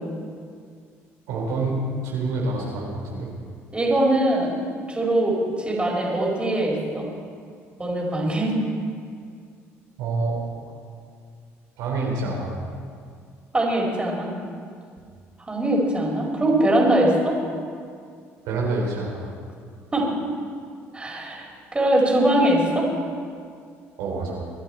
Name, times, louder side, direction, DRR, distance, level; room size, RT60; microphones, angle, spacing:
voice 1, 1.3-3.3 10.0-10.4 11.8-12.5 18.4-19.3 24.0-24.4, right 3 dB, 80° right, -3 dB, 3.5 m, -27 dB
voice 2, 3.7-4.5 4.9-5.4 5.6-7.1 7.8-8.5 13.5-14.3 15.5-17.4 19.9-20.1 20.9-21.5 21.7-22.9, right 1 dB, 20° right, -2 dB, 4.7 m, -21 dB
25.0 x 10.0 x 4.5 m, 2.2 s
supercardioid pair, 75°, 6 cm